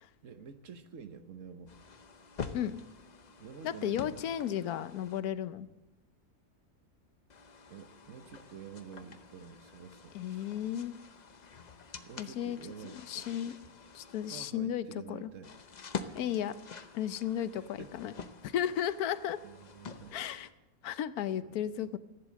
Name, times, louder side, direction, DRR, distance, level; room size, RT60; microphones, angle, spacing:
voice 1, 0.2-1.8 3.4-4.4 5.6-5.7 7.7-10.5 12.1-13.4 14.3-15.5 17.4-18.0 19.3-20.2 21.4-21.6, right 7 dB, 60° right, 9 dB, 1.2 m, -49 dB
sound 1, 1.7-5.2 7.3-14.5 15.4-20.5, left 5 dB, 40° left, 0.6 m, -47 dB
voice 2, 3.6-5.7 10.1-11.0 12.2-12.6 12.8-13.5 13.9-15.3 16.1-16.5 16.9-18.1 18.4-19.4 20.1-20.5 20.8-22.0, left 10 dB, 80° left, 14 dB, 1.2 m, -34 dB
15.0 x 10.5 x 7.5 m, 1.1 s
omnidirectional pair, 1.6 m